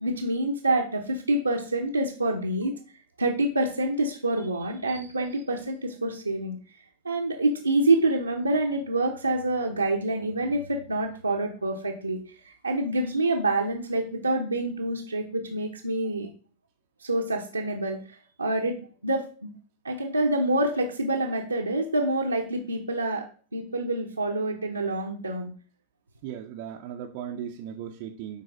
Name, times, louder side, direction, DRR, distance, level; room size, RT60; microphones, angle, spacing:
voice 1, 0.0-2.8 3.2-6.6 7.0-16.3 17.0-18.8 19.0-19.5 19.8-23.2 23.5-25.5, right 2 dB, 80° right, -2 dB, 0.8 m, -27 dB
voice 2, 26.2-28.4, right 9 dB, 45° right, 2 dB, 0.6 m, -37 dB
9.6 x 4.1 x 3.8 m, 0.40 s
figure-of-eight pair, 90°, 0 cm